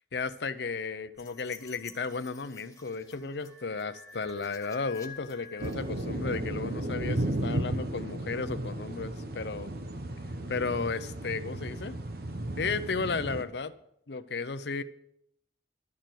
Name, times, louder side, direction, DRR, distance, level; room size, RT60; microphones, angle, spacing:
voice 1, 0.1-9.7 10.5-12.0 12.6-13.7 14.1-14.8, left 4 dB, 70° left, 12 dB, 0.7 m, -34 dB
sound 1, 1.2-6.3, left 6 dB, 20° left, 1.2 m, -50 dB
sound 2, 5.6-13.4, right 1 dB, 60° right, 1.0 m, -34 dB
12.0 x 6.8 x 7.7 m, 0.76 s
head